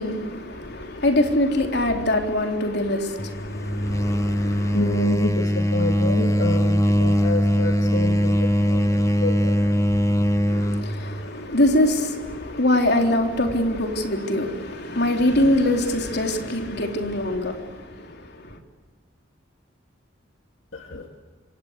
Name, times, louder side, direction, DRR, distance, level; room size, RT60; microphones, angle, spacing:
voice 1, 0.0-4.8 10.5-18.6, left 1 dB, 55° left, 3.7 m, -23 dB
sound 1, 3.2-10.9, equal, 15° left, 1.3 m, -21 dB
voice 2, 4.7-8.4 8.7-9.5 20.9-21.0, left 2 dB, 70° left, 2.3 m, -28 dB
27.5 x 26.0 x 8.3 m
head